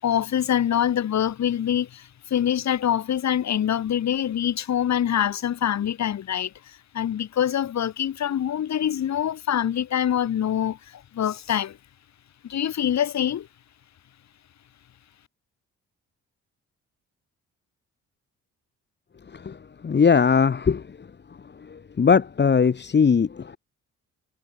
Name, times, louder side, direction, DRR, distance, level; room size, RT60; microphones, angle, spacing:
voice 1, 0.0-11.8 12.4-13.5, left 10 dB, 65° left, 5.2 m, -25 dB
voice 2, 19.8-20.8 22.0-23.6, left 6 dB, 35° left, 1.9 m, -19 dB
cardioid pair, 90°, 30 cm